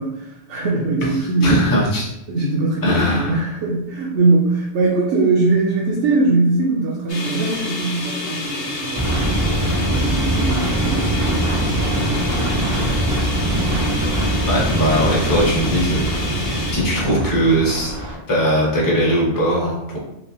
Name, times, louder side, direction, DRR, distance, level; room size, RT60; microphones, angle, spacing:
voice 1, 0.0-1.6 2.3-13.1, right 3 dB, 70° right, -4 dB, 0.9 m, -22 dB
voice 2, 1.4-2.1 2.8-3.3 14.5-16.3 16.7-17.9 18.3-20.0, equal, 20° left, -4 dB, 0.7 m, -19 dB
sound 1, 7.1-16.7, left 2 dB, 55° left, 1.0 m, -28 dB
sound 2, 9.0-18.1, right 1 dB, 30° right, 0.4 m, -22 dB
3.2 x 2.9 x 2.7 m, 0.85 s
omnidirectional pair, 1.2 m